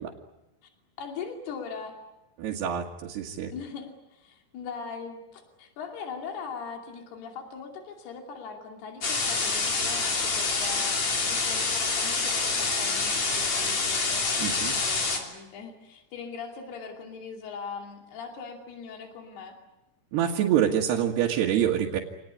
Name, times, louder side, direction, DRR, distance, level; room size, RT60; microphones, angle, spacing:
voice 1, 1.0-2.0 3.5-11.0 11.2-19.6, left 5 dB, 80° left, 3 dB, 4.7 m, -40 dB
voice 2, 2.4-3.5 14.4-14.8 20.1-22.0, right 10 dB, 85° right, -2 dB, 3.8 m, -26 dB
sound 1, 9.0-15.2, left 4 dB, 45° left, 4.2 m, -27 dB
27.5 x 19.5 x 9.8 m, 0.95 s
omnidirectional pair, 4.6 m